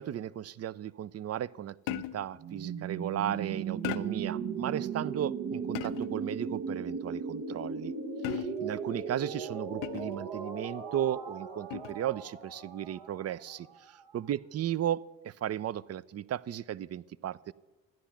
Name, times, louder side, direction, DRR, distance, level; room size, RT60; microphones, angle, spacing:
voice 1, 0.0-7.9 8.3-17.5, right 11 dB, 35° right, 21 dB, 0.5 m, -35 dB
sound 1, 1.9-2.4 3.8-4.4 5.7-6.3 8.2-8.8 9.8-10.3 11.7-12.1, left 16 dB, 80° left, 0.7 m, -38 dB
sound 2, 2.4-14.2, right 6 dB, 65° right, 1.6 m, -37 dB
14.0 x 10.5 x 5.8 m, 1.1 s
hypercardioid pair, 55°, 42 cm